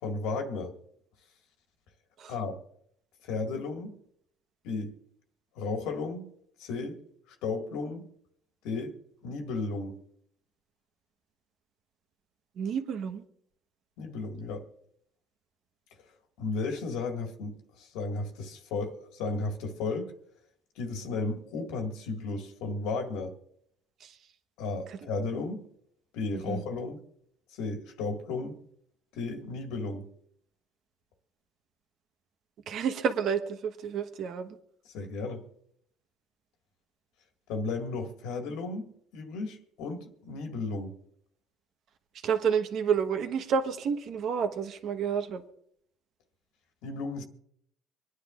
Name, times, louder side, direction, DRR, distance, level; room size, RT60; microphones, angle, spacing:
voice 1, 0.0-0.7 2.3-2.6 3.2-3.9 4.6-4.9 5.6-6.3 6.6-7.0 7.4-8.0 8.6-9.0 9.2-10.0 14.0-14.6 16.4-20.1 20.8-23.3 24.6-25.6 26.1-27.0 27.5-28.6 29.1-30.0 34.9-35.4 37.5-40.9 46.8-47.2, left 3 dB, 85° left, 1.9 m, -34 dB
voice 2, 12.6-13.2 24.0-24.1 24.9-25.0 26.5-26.6 32.7-34.6 42.2-45.4, right 7 dB, 60° right, 1.2 m, -30 dB
25.5 x 10.0 x 2.5 m
cardioid pair, 115°, 0 cm